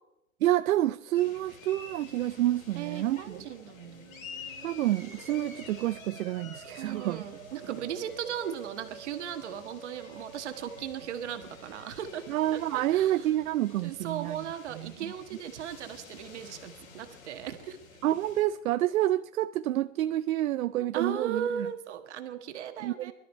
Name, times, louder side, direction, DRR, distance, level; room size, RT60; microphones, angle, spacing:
voice 1, 0.4-3.4 4.6-7.2 12.3-14.4 14.8-15.1 18.0-21.7 22.8-23.1, right 14 dB, 75° right, 0.5 m, -28 dB
sound 1, 1.1-18.4, left 5 dB, 70° left, 3.3 m, -50 dB
voice 2, 2.7-4.2 6.8-12.2 12.5-13.3 13.8-17.8 20.9-23.1, right 9 dB, 55° right, 1.6 m, -37 dB
Musical instrument, 3.7-12.5, right 4 dB, 5° right, 0.4 m, -51 dB
21.0 x 12.5 x 4.5 m
hypercardioid pair, 165°, 41 cm